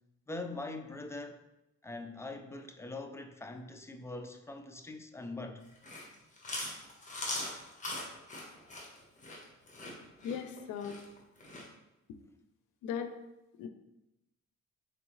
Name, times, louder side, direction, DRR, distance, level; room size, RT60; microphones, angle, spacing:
voice 1, 0.3-1.4 1.8-5.6, left 2 dB, 10° left, 0.4 m, -42 dB
Chewing mastication, 5.6-11.7, left 2 dB, 25° left, 1.3 m, -41 dB
voice 2, 10.2-11.0 12.8-13.1 13.6-13.7, left 7 dB, 90° left, 0.5 m, -37 dB
4.1 x 3.5 x 3.1 m
cardioid pair, 90°, 30 cm